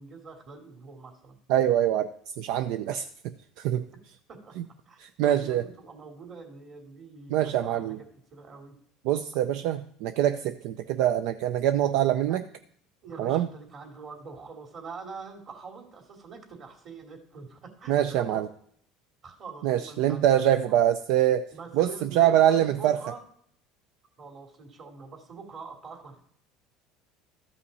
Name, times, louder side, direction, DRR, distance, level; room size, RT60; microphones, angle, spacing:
voice 1, 0.0-1.4 4.3-4.6 4.8-8.0 8.3-8.7 12.3-12.4 13.0-18.4 19.2-20.8 21.5-23.2 24.2-26.2, right 4 dB, 40° right, 2 dB, 2.8 m, -44 dB
voice 2, 1.5-2.1 2.4-3.1 3.6-3.8 4.6-4.7 5.0-5.6 7.3-8.0 9.0-12.4 13.2-13.5 17.9-18.5 19.6-21.5 21.7-23.0, right 11 dB, 70° right, 10 dB, 0.4 m, -24 dB
13.5 x 5.6 x 4.1 m, 0.64 s
supercardioid pair, 110°, 0 cm